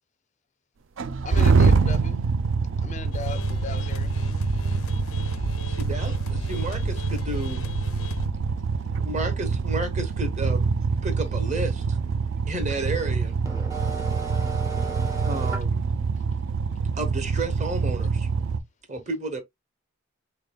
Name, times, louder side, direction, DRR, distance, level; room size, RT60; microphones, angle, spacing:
sound 1, 1.0-18.6, right 4 dB, 65° right, 0.4 m, -25 dB
voice 1, 1.2-2.2 2.8-4.1, left 4 dB, 35° left, 0.4 m, -36 dB
sound 2, 3.1-8.3, left 2 dB, 85° left, 0.6 m, -36 dB
voice 2, 5.7-7.7 9.0-10.7 11.0-12.0 12.4-13.4 15.2-15.8 16.9-18.3 18.9-19.4, right 2 dB, 35° right, 0.9 m, -32 dB
voice 3, 13.5-15.6, right 5 dB, 15° right, 0.5 m, -34 dB
3.9 x 3.5 x 2.2 m
head